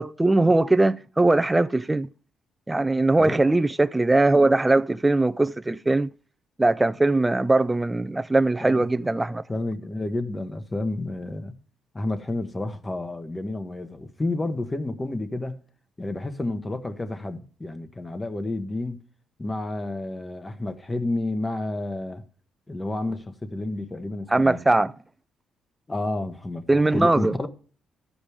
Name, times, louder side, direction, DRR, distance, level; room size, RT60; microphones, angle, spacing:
voice 1, 0.0-2.1 2.7-6.1 6.6-9.4 24.3-24.9 26.7-27.4, right 2 dB, 15° right, 0.4 m, -20 dB
voice 2, 8.6-11.6 11.9-15.6 16.0-19.0 19.4-22.2 22.7-24.6 25.9-26.7 26.9-27.5, left 2 dB, 20° left, 1.2 m, -30 dB
13.5 x 5.2 x 4.9 m
cardioid pair, 90°, 0 cm